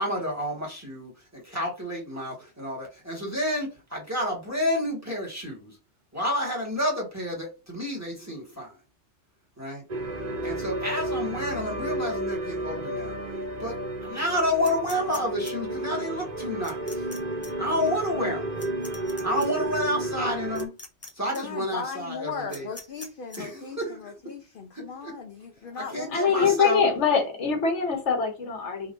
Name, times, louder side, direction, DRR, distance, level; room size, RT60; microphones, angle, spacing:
voice 1, 0.0-5.7 6.1-8.7 9.6-9.8 10.4-13.2 13.6-13.8 14.0-17.0 17.6-18.5 19.2-20.7 21.1-22.7 23.4-24.2 24.7-25.2 25.8-26.8, equal, 15° right, 1.6 m, -30 dB
sound 1, 9.9-20.7, right 1 dB, 40° right, 0.8 m, -32 dB
sound 2, 14.6-15.5 16.6-17.2 17.4-17.5 18.6-19.5 20.6-21.1 21.3-21.4 22.5-23.4, left 2 dB, 15° left, 0.8 m, -42 dB
voice 2, 21.3-26.4, left 5 dB, 55° left, 0.7 m, -37 dB
voice 3, 26.1-28.9, left 5 dB, 70° left, 1.3 m, -23 dB
4.7 x 3.7 x 2.5 m
omnidirectional pair, 1.2 m